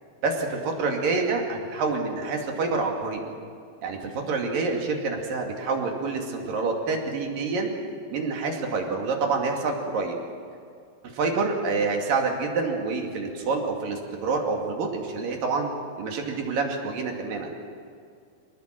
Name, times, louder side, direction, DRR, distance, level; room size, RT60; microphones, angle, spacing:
voice 1, 0.2-3.2 3.8-7.7 8.1-10.2 11.1-15.7 16.0-17.5, right 4 dB, 70° right, 1 dB, 4.1 m, -27 dB
25.0 x 19.0 x 7.7 m, 2.3 s
omnidirectional pair, 4.2 m